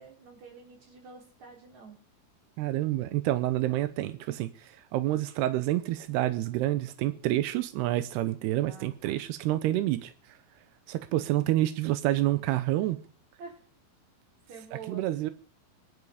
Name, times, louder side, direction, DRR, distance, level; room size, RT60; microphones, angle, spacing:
voice 1, 0.0-2.0 8.6-9.2 11.1-11.5 13.4-13.6 14.5-15.1, right 5 dB, 45° right, 4.6 m, -48 dB
voice 2, 2.6-10.1 10.9-13.0 14.9-15.3, right 15 dB, 90° right, 2.9 m, -28 dB
22.0 x 11.0 x 5.0 m
omnidirectional pair, 4.5 m